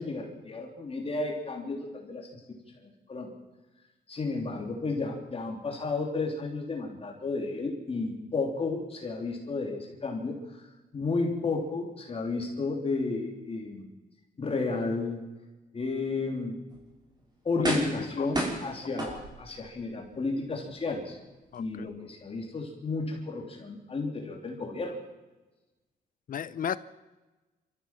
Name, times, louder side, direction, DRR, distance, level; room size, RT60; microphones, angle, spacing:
voice 1, 0.0-2.6 2.8-3.3 4.1-10.6 10.9-13.9 14.4-15.2 15.7-16.6 17.4-21.2 21.6-25.0, left 3 dB, 35° left, 1 dB, 3.2 m, -32 dB
sound 1, 16.7-16.8 17.6-18.1 18.3-19.6 20.1-20.2, right 1 dB, 25° right, 5.7 m, -31 dB
voice 2, 17.6-18.3 21.5-21.9 26.3-26.8, left 8 dB, 55° left, 16 dB, 0.8 m, -34 dB
27.5 x 14.0 x 7.5 m, 1.2 s
cardioid pair, 120°, 17 cm